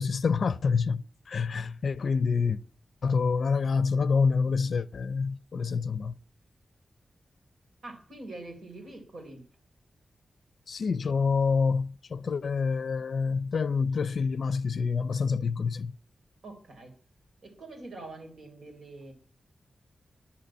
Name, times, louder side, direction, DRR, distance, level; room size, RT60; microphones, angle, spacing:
voice 1, 0.0-2.6 3.0-6.1 10.7-15.9, left 5 dB, 70° left, 0.5 m, -27 dB
voice 2, 7.8-9.4 16.4-16.9 17.4-19.1, right 2 dB, 75° right, 3.7 m, -44 dB
10.0 x 6.8 x 8.8 m
wide cardioid pair, 95°, 0 cm